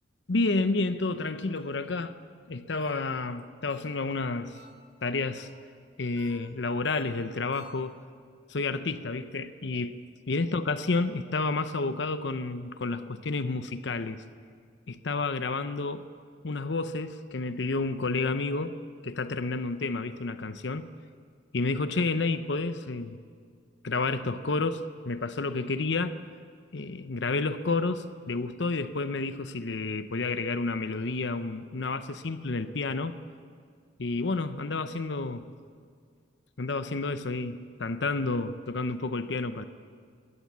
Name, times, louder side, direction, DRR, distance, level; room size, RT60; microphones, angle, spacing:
voice 1, 0.3-2.2 2.5-4.6 5.0-5.5 6.0-7.9 8.5-10.0 10.3-14.2 14.9-16.0 16.4-18.8 19.0-20.9 21.5-23.2 23.8-26.2 26.7-33.2 34.0-35.5 36.6-39.7, left 3 dB, 70° left, 11 dB, 0.7 m, -30 dB
sound 1, 1.5-1.9 2.7-3.2 3.7-4.2 4.5-5.0 5.4-5.8 6.2-7.8, right 3 dB, 75° right, 3.8 m, -55 dB
21.0 x 18.0 x 7.4 m, 2.1 s
head